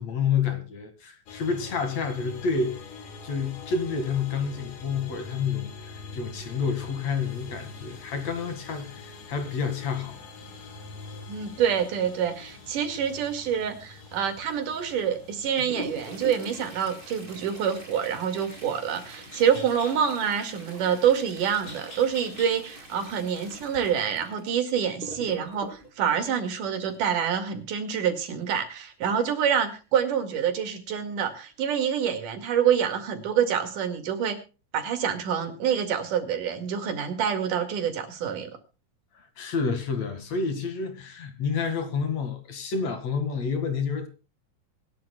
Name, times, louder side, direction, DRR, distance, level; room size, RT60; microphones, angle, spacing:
voice 1, 0.0-2.8 3.2-10.2 39.1-44.1, left 5 dB, 55° left, 3.0 m, -29 dB
sound 1, 1.3-20.4, left 3 dB, 75° left, 3.6 m, -45 dB
sound 2, 7.2-24.1, left 1 dB, 25° left, 5.6 m, -51 dB
voice 2, 11.3-34.4 34.7-38.5, right 8 dB, 75° right, 3.6 m, -26 dB
Toilet flush, 15.2-27.1 29.0-29.1 29.5-29.6 30.3-30.4 31.1-31.3 31.8-31.9, right 1 dB, 15° right, 3.2 m, -44 dB
24.5 x 12.0 x 2.3 m
omnidirectional pair, 3.8 m